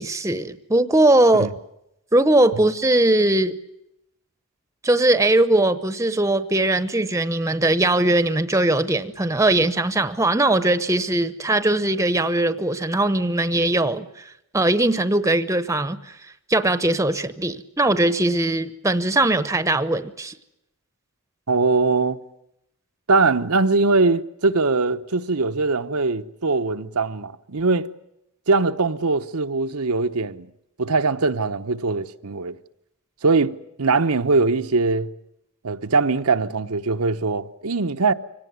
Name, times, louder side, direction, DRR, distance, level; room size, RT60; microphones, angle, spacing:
voice 1, 0.0-1.5 2.1-3.6 4.8-14.2 14.5-16.0 16.5-20.3, right 2 dB, 15° right, 0.8 m, -20 dB
voice 2, 21.5-22.2 23.1-27.9 28.5-30.5 30.8-32.6 33.2-35.1 35.6-38.1, right 3 dB, 90° right, 1.0 m, -21 dB
24.5 x 18.0 x 9.4 m
head